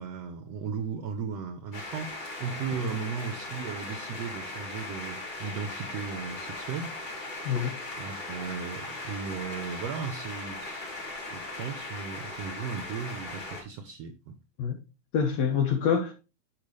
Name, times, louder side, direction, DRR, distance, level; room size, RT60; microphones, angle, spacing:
voice 1, 0.0-7.0 7.4-7.6 8.0-10.9 11.2-14.4, right 6 dB, 65° right, 1.8 m, -36 dB
sound 1, 1.7-13.6, left 2 dB, 35° left, 4.1 m, -38 dB
voice 2, 7.5-7.8 14.6-14.8 15.1-16.1, left 7 dB, 65° left, 2.4 m, -26 dB
11.0 x 5.5 x 3.2 m
omnidirectional pair, 3.6 m